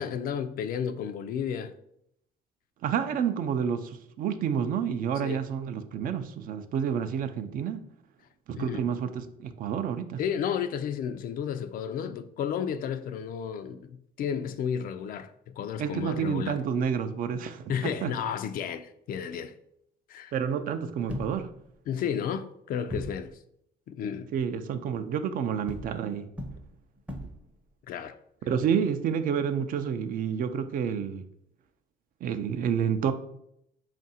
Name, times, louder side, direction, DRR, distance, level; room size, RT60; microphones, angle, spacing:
voice 1, 0.0-1.7 5.2-5.4 8.5-8.8 10.2-16.6 17.7-19.5 20.1-20.3 21.9-23.4 23.9-24.3 27.9-28.2, left 8 dB, 60° left, 0.4 m, -32 dB
voice 2, 2.8-7.8 8.5-10.2 15.8-18.1 20.3-21.5 24.3-26.3 28.5-31.2 32.2-33.1, right 7 dB, 55° right, 0.4 m, -29 dB
sound 1, 21.1-21.8 22.9-23.3 25.7-27.5, left 1 dB, 10° right, 0.6 m, -38 dB
3.5 x 2.5 x 4.1 m
cardioid pair, 110°, 17 cm